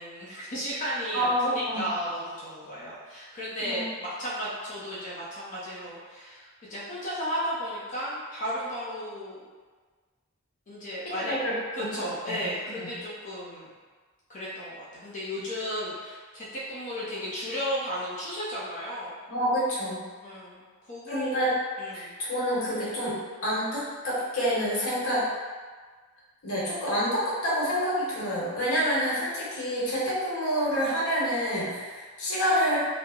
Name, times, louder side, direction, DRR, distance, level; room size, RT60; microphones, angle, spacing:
voice 1, 0.0-9.5 10.7-11.4 11.7-13.7 14.3-19.1 20.2-21.3 21.8-22.2, equal, 35° left, -8 dB, 0.6 m, -34 dB
voice 2, 1.1-1.9 3.6-3.8 11.3-11.9 12.3-12.4 12.8-12.9 19.3-20.0 21.1-21.5 21.9-23.2 23.4-25.3 26.4-32.8, equal, 70° left, -7 dB, 1.1 m, -27 dB
2.9 x 2.0 x 3.5 m, 1.5 s
head